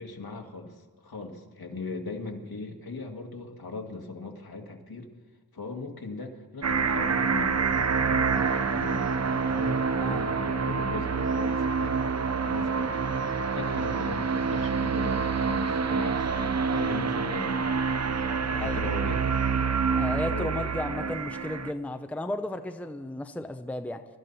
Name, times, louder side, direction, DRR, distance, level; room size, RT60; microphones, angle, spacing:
voice 1, 0.0-5.1 5.5-12.1 12.4-13.0 13.5-17.7 18.4-19.4 20.1-21.2, left 3 dB, 70° left, 3 dB, 2.0 m, -39 dB
sound 1, 6.6-21.7, right 5 dB, 40° right, 0.6 m, -27 dB
voice 2, 10.0-10.4 18.5-18.9 20.0-24.0, left 1 dB, 5° left, 8 dB, 0.6 m, -34 dB
23.0 x 13.0 x 4.1 m, 1.4 s
wide cardioid pair, 110°, 39 cm